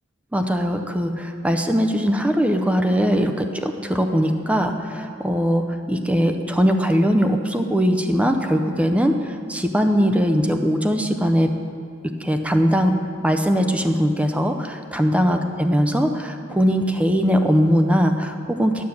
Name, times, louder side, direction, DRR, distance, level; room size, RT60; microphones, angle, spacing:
voice 1, 0.3-11.5 12.2-12.9 13.2-18.8, equal, 5° right, 6 dB, 0.5 m, -20 dB
9.7 x 6.3 x 7.0 m, 2.3 s
head